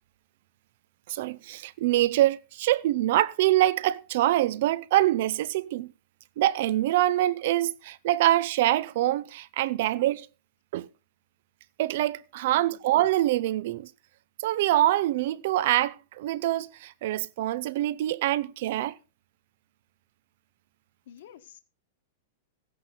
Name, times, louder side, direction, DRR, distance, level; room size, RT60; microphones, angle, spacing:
voice 1, 1.1-5.9 6.4-10.3 10.7-10.9 11.8-13.9 14.4-19.0, right 14 dB, 45° right, 0.6 m, -25 dB
voice 2, 21.1-21.6, left 10 dB, 55° left, 1.6 m, -49 dB
16.0 x 10.0 x 4.0 m
supercardioid pair, 175°, 0 cm